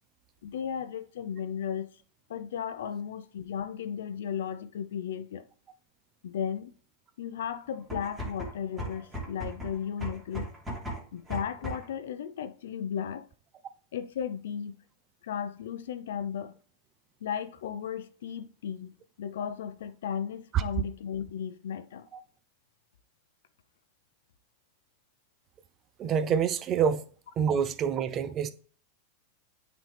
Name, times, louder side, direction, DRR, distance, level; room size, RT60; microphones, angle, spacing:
voice 1, 0.4-1.9 2.3-5.4 6.2-6.7 7.2-10.5 11.1-13.3 13.9-14.7 15.2-16.6 17.2-18.9 19.2-22.1, left 8 dB, 85° left, 0.7 m, -35 dB
sound 1, 7.8-12.0, equal, 10° right, 2.5 m, -38 dB
voice 2, 26.0-27.1 27.4-28.5, right 7 dB, 30° right, 0.7 m, -27 dB
9.2 x 4.1 x 3.5 m
supercardioid pair, 140°, 0 cm